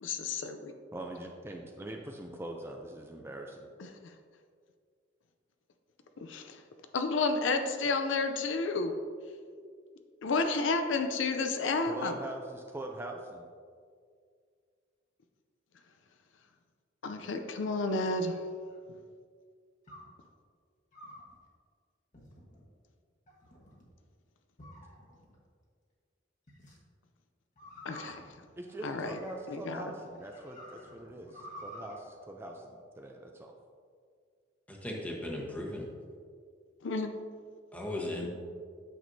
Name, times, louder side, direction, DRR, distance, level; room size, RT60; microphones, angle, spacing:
voice 1, 0.0-0.7 6.2-6.6 6.9-8.9 10.2-12.1 17.0-18.3 27.8-28.2 28.8-29.2 29.5-29.8 36.8-37.1 38.2-38.3, left 3 dB, 70° left, 6 dB, 0.5 m, -31 dB
voice 2, 0.9-3.7 11.9-13.5 28.6-33.5, right 1 dB, 15° right, 2 dB, 0.4 m, -42 dB
sound 1, 17.0-18.9 19.9-20.2 20.9-21.3 22.1-22.7 23.3-23.9 24.6-25.4 26.5-26.8 27.6-29.6 30.1-32.0, equal, 40° left, 1.3 m, -51 dB
voice 3, 34.7-35.9 37.7-38.3, left 1 dB, 10° left, -2 dB, 1.1 m, -37 dB
9.1 x 6.1 x 2.7 m, 2.1 s
head